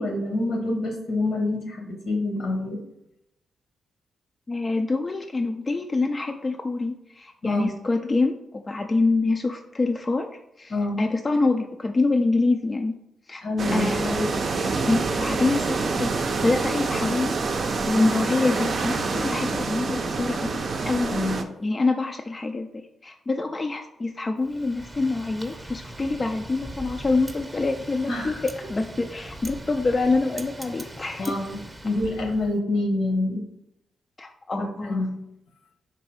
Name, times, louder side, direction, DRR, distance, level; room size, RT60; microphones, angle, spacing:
voice 1, 0.0-2.8 7.4-7.7 10.7-11.0 13.4-14.1 21.1-21.4 28.1-28.4 31.2-31.6 31.8-33.4 34.6-35.2, left 2 dB, 75° left, 1 dB, 1.1 m, -27 dB
voice 2, 4.5-10.3 10.6-13.0 13.3-13.4 13.7-14.3 14.9-21.2 21.6-31.3 34.2-35.0, left 3 dB, 35° left, 4 dB, 0.3 m, -26 dB
sound 1, 13.6-21.4, right 4 dB, 55° right, 0.5 m, -26 dB
Wind, 24.4-32.5, right 1 dB, 20° right, 0.7 m, -41 dB
3.9 x 2.6 x 4.6 m, 0.84 s
supercardioid pair, 55°, 0 cm